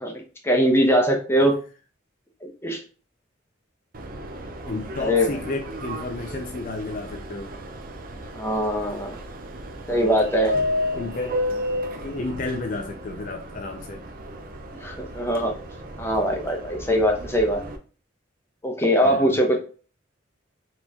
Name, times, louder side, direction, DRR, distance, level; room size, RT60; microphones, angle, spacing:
voice 1, 0.4-1.6 2.6-2.8 5.0-5.3 8.3-9.2 9.9-10.5 14.8-15.5 16.0-17.6 18.6-19.6, equal, 10° left, 2 dB, 0.7 m, -21 dB
Subway metro underground, 3.9-17.8, left 1 dB, 45° right, 0.6 m, -33 dB
voice 2, 4.6-7.5 9.9-10.1 10.9-11.4 12.0-14.0 19.0-19.4, left 3 dB, 45° left, 4 dB, 0.4 m, -32 dB
4.2 x 3.0 x 3.6 m, 0.38 s
head